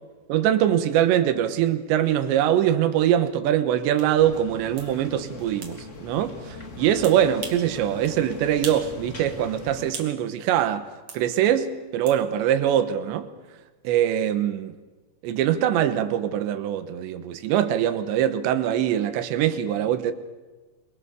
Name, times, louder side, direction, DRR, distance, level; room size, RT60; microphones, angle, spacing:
voice 1, 0.3-10.9 11.1-13.3 13.9-14.8 15.2-20.1, right 10 dB, 85° right, 3.5 m, -23 dB
sound 1, 4.0-4.1 4.8-4.9 5.6-5.8 7.0-7.7 8.0-8.2 8.6-8.9 9.2-10.2 11.1-11.2 12.1-12.2, right 5 dB, 40° right, 2.8 m, -38 dB
sound 2, 4.2-9.9, left 2 dB, 30° left, 1.6 m, -40 dB
24.0 x 23.5 x 6.9 m
omnidirectional pair, 5.0 m